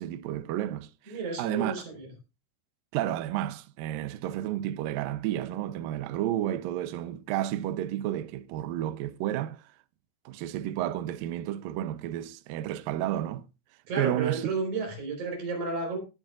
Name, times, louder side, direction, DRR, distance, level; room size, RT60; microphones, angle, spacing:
voice 1, 0.0-1.9 2.9-9.6 10.3-13.4 14.0-14.5, right 12 dB, 90° right, 2.0 m, -31 dB
voice 2, 1.1-2.1 13.9-16.0, right 4 dB, 45° right, 5.6 m, -32 dB
18.5 x 9.0 x 2.5 m
omnidirectional pair, 5.1 m